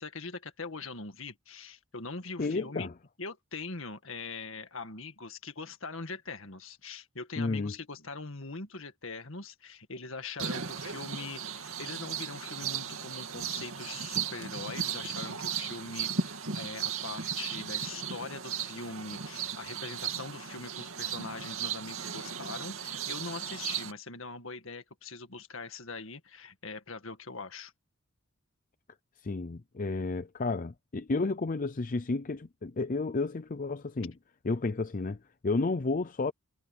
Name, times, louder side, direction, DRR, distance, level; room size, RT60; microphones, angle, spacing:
voice 1, 0.0-2.9 3.2-27.7, left 4 dB, 65° left, 2.0 m, -42 dB
voice 2, 2.4-2.9 7.4-7.7 29.2-34.1 34.4-36.3, left 3 dB, 40° left, 0.5 m, -31 dB
sound 1, 10.4-23.9, right 7 dB, 75° right, 2.4 m, -36 dB
head